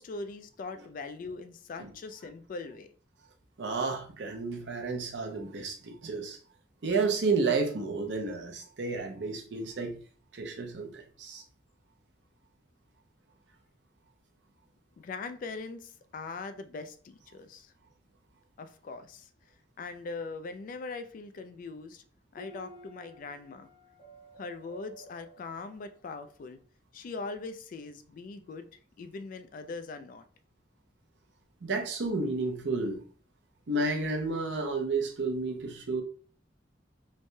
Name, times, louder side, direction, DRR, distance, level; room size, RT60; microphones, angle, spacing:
voice 1, 0.0-2.9 15.0-17.7 18.6-19.3 19.8-22.0 22.3-23.7 24.4-26.6 26.9-28.7 29.0-30.2, left 3 dB, 50° left, 0.3 m, -41 dB
voice 2, 3.6-6.4 6.8-10.0 10.3-11.4 31.6-33.0 33.7-36.0, right 3 dB, 70° right, 0.6 m, -31 dB
sound 1, 22.4-26.1, right 2 dB, 30° left, 0.8 m, -52 dB
3.2 x 2.1 x 2.6 m
head